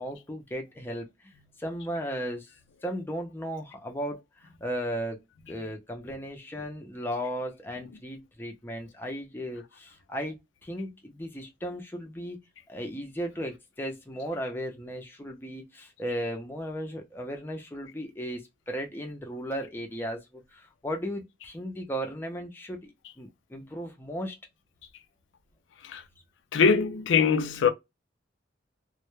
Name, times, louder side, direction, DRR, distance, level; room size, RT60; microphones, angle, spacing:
voice 1, 0.0-1.3 1.6-2.5 2.8-5.2 5.5-10.4 10.6-12.4 12.7-24.4, equal, 10° left, 0.4 m, -36 dB
voice 2, 26.5-27.7, left 6 dB, 80° left, 0.4 m, -22 dB
2.1 x 2.1 x 2.9 m
head